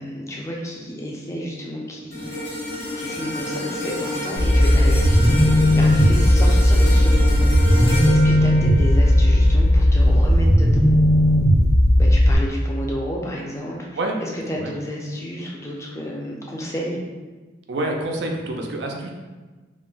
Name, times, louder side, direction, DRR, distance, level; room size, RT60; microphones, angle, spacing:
voice 1, 0.0-2.4 3.0-10.8 12.0-17.0, equal, 15° left, -2 dB, 0.4 m, -31 dB
sound 1, 2.1-10.5 10.9-11.1, left 1 dB, 85° left, 1.3 m, -30 dB
sound 2, 4.4-12.4, equal, 65° left, 0.8 m, -15 dB
voice 2, 17.7-19.1, right 1 dB, 70° right, 2 dB, 0.4 m, -27 dB
2.4 x 2.0 x 3.8 m, 1.3 s
head